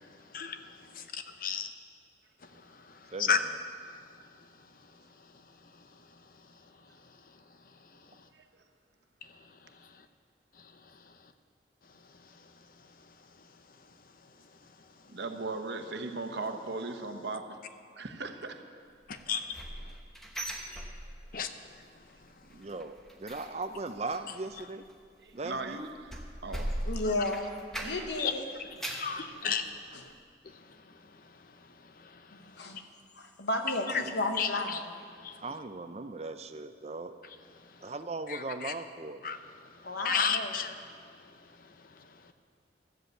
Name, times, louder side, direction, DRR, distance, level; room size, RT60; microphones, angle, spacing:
voice 1, 0.3-1.7 3.3-3.4 19.1-19.4 21.3-21.5 28.2-28.3 28.9-29.7 30.4-30.6 32.0-32.2 34.4-34.8 35.2-35.4 38.3-38.7 39.2-39.4 40.0-40.7, left 6 dB, 50° left, 8 dB, 0.7 m, -32 dB
voice 2, 3.1-3.6 22.5-24.9 25.3-25.8 33.9-34.1 35.4-37.1 37.8-39.2, right 3 dB, 35° right, 9 dB, 0.5 m, -38 dB
voice 3, 15.1-17.4 18.0-18.6 25.2-25.9 26.4-26.7 27.8-28.0, right 3 dB, 70° right, 5 dB, 1.0 m, -37 dB
sound 1, 19.2-21.5 21.8-22.1 22.4-28.2 28.6-29.2 29.7-29.8 30.2-30.3, right 1 dB, ahead, 1.0 m, -40 dB
voice 4, 26.9-27.5 27.8-28.4 29.9-30.0 32.3-32.8 33.2-34.9 39.8-40.6, left 2 dB, 70° left, 4 dB, 1.3 m, -33 dB
13.0 x 8.0 x 7.8 m, 2.1 s
head